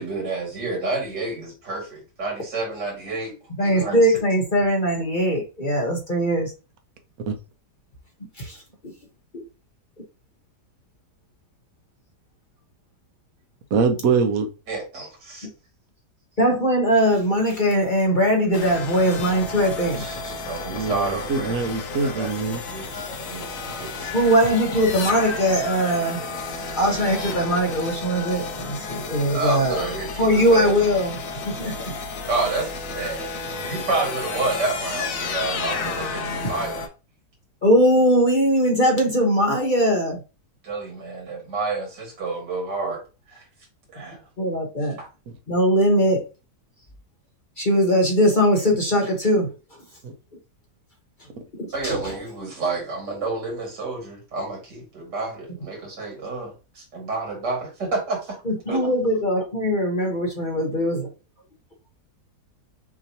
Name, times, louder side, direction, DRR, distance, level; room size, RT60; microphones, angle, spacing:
voice 1, 0.0-4.2 14.7-15.5 20.0-21.7 22.0-24.1 29.3-30.7 32.3-33.3 33.6-36.9 40.6-43.0 43.3-43.4 43.9-44.2 45.0-45.1 51.7-58.4 58.7-58.8, right 3 dB, 90° right, 2.8 m, -29 dB
voice 2, 3.6-6.5 8.4-8.6 16.4-20.0 24.1-26.2 26.8-29.8 30.2-31.2 31.4-31.9 37.6-40.2 44.4-45.0 45.5-46.2 47.6-49.5 51.6-52.0 58.5-61.1, equal, 35° left, 1.1 m, -20 dB
voice 3, 13.7-14.5 20.7-22.6 50.0-50.1, right 5 dB, 60° right, 1.2 m, -23 dB
sound 1, 18.5-36.9, left 4 dB, 60° left, 1.1 m, -32 dB
6.0 x 3.0 x 2.8 m
omnidirectional pair, 1.8 m